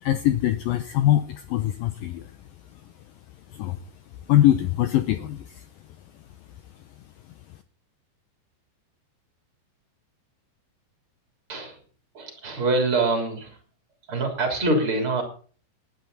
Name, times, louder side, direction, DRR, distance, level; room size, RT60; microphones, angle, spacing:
voice 1, 0.0-2.3 2.7-2.8 3.5-3.8 4.3-5.7, left 13 dB, 85° left, 10 dB, 2.0 m, -23 dB
voice 2, 12.1-13.6 14.1-15.2, right 2 dB, 30° right, 4 dB, 3.7 m, -24 dB
19.0 x 10.5 x 4.1 m, 0.41 s
omnidirectional pair, 5.2 m